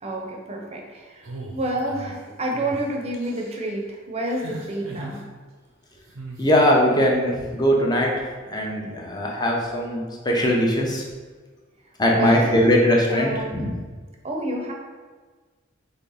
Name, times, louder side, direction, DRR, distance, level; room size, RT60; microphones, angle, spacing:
voice 1, 0.0-5.2 12.1-12.7 13.1-13.7 14.2-14.7, right 1 dB, 30° right, 0 dB, 0.7 m, -29 dB
sound 1, 1.2-2.1 2.5-2.8 3.1-3.6 4.3-5.2 6.1-6.5, right 2 dB, 90° right, 0.8 m, -38 dB
voice 2, 6.4-8.1 8.5-11.0 12.0-13.7, equal, 20° left, -1 dB, 0.7 m, -20 dB
4.0 x 3.3 x 3.9 m, 1.4 s
head